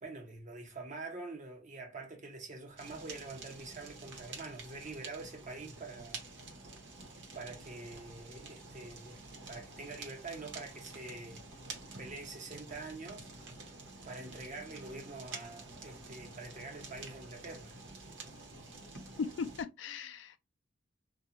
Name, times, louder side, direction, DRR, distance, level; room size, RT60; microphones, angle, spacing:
voice 1, 0.0-6.2 7.3-11.4 12.0-13.3 14.0-17.8, right 3 dB, 45° right, 0.8 m, -46 dB
Fire, 2.8-19.6, right 3 dB, 80° right, 0.8 m, -49 dB
voice 2, 19.2-20.4, left 5 dB, 70° left, 0.3 m, -38 dB
2.4 x 2.2 x 2.8 m
head